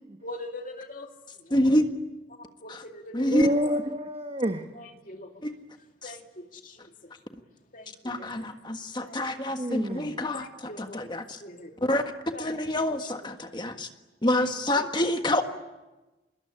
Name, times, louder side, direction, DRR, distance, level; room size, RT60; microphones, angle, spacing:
voice 1, 0.2-1.5 2.3-3.6 4.7-5.4 6.0-7.1 7.7-8.5 8.8-9.2 10.3-11.1 11.4-11.8 12.3-12.6 14.2-14.9, left 1 dB, 45° left, 2.5 m, -43 dB
voice 2, 1.5-1.8 2.7-2.8 3.1-3.5 5.4-5.5 6.0-6.1 8.0-10.5 10.8-11.4 11.8-12.0 12.4-13.9 14.2-15.4, left 1 dB, 25° left, 1.5 m, -27 dB
voice 3, 3.3-4.7 8.1-8.3 9.6-10.2, equal, 30° right, 1.2 m, -29 dB
26.0 x 21.0 x 10.0 m
head